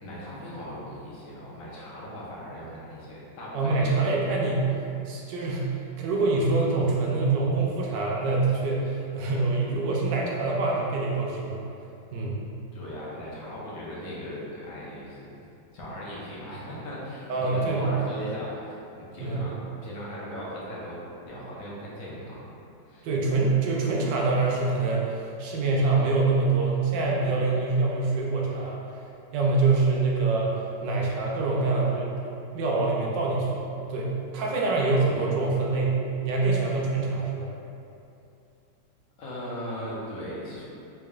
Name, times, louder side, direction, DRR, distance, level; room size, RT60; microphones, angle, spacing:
voice 1, 0.0-3.9 12.7-15.5 15.7-19.5 19.8-22.4 22.9-23.1 39.2-40.6, equal, 60° left, -6 dB, 1.0 m, -38 dB
voice 2, 3.5-4.7 5.0-5.7 6.0-11.6 12.1-12.4 17.3-17.9 19.2-19.5 23.0-28.8 29.3-36.0 36.2-37.5, right 3 dB, 80° right, -3 dB, 1.3 m, -25 dB
3.7 x 3.4 x 2.3 m, 2.7 s
omnidirectional pair, 1.9 m